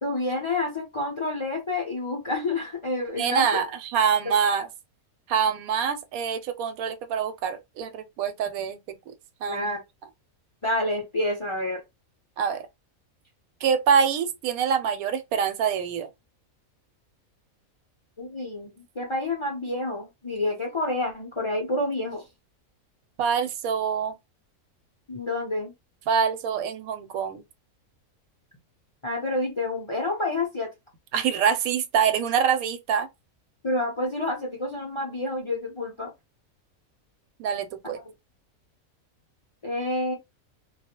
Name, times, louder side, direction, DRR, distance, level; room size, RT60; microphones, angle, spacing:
voice 1, 0.0-3.6 9.5-9.8 10.6-11.8 18.2-22.3 25.1-25.7 29.0-30.7 33.6-36.1 37.8-37.9 39.6-40.1, left 2 dB, 50° left, 0.3 m, -28 dB
voice 2, 3.2-4.7 5.3-8.8 9.1-9.2 9.4-9.7 12.4-12.6 13.6-16.1 23.2-24.1 26.1-27.4 31.1-33.1 37.4-38.0, right 7 dB, 85° right, 1.0 m, -25 dB
2.3 x 2.0 x 2.8 m
omnidirectional pair, 1.5 m